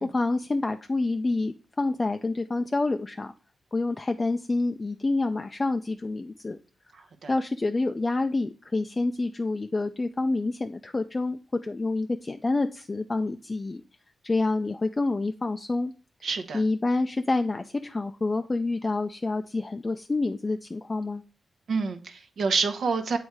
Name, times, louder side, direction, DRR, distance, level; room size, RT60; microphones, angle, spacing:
voice 1, 0.0-3.3 3.7-6.6 7.3-13.8 14.2-15.9 16.5-21.2, left 2 dB, 25° left, 0.3 m, -28 dB
voice 2, 16.2-16.6 21.7-23.2, right 4 dB, 70° right, 0.8 m, -27 dB
7.9 x 3.2 x 4.7 m
wide cardioid pair, 105°, 0 cm